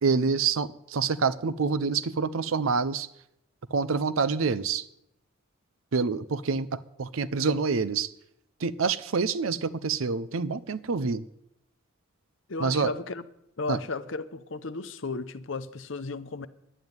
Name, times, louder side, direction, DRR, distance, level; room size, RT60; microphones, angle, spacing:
voice 1, 0.0-3.1 3.7-4.8 5.9-8.1 8.6-11.2 12.6-12.9 13.7-13.8, right 5 dB, 75° right, 0.6 m, -27 dB
voice 2, 12.5-13.2 13.6-16.5, left 3 dB, 60° left, 0.8 m, -34 dB
11.0 x 9.0 x 9.5 m
head